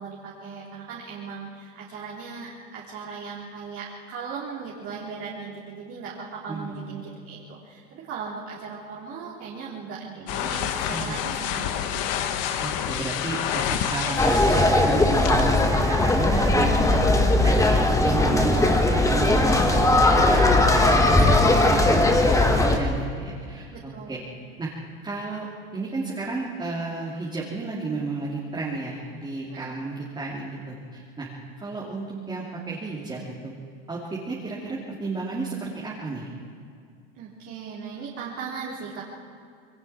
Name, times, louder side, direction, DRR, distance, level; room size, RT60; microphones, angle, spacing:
voice 1, 0.0-12.0 16.8-17.4 23.7-24.2 29.5-29.7 37.2-39.0, right 5 dB, 45° right, -5 dB, 3.6 m, -38 dB
voice 2, 6.5-7.0 10.9-11.2 12.6-17.0 17.4-24.2 24.6-24.7 25.0-25.5 25.7-31.3 31.6-33.5 33.9-36.3, right 3 dB, 15° right, -5 dB, 3.1 m, -32 dB
sound 1, 10.3-15.7, left 9 dB, 55° left, 1.5 m, -29 dB
sound 2, 14.2-22.8, left 2 dB, 10° left, 1.6 m, -19 dB
28.0 x 21.5 x 4.5 m, 2.3 s
supercardioid pair, 120°, 30 cm